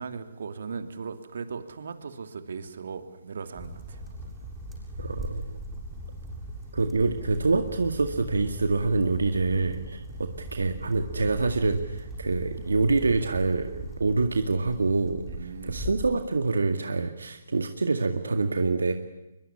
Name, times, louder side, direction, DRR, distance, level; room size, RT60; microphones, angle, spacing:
voice 1, 0.0-4.3 10.1-10.2 12.6-12.7 15.3-15.8, right 5 dB, 70° right, 9 dB, 2.8 m, -38 dB
sound 1, 3.5-16.2, equal, 5° right, 7.5 m, -39 dB
voice 2, 5.0-5.6 6.7-15.2 15.6-18.9, right 3 dB, 90° right, 7 dB, 2.0 m, -26 dB
22.5 x 22.5 x 9.9 m, 0.95 s
hypercardioid pair, 150°, 0 cm